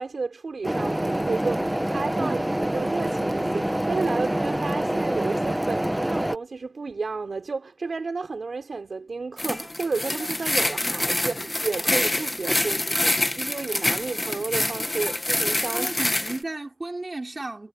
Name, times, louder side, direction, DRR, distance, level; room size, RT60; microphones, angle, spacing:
voice 1, 0.0-15.9, right 4 dB, 75° right, 3.8 m, -32 dB
sound 1, 0.6-6.4, right 1 dB, 10° right, 1.2 m, -26 dB
sound 2, 9.4-16.4, left 1 dB, 25° left, 1.4 m, -26 dB
voice 2, 15.7-17.7, right 2 dB, 35° right, 4.8 m, -34 dB
wide cardioid pair, 80°, 0 cm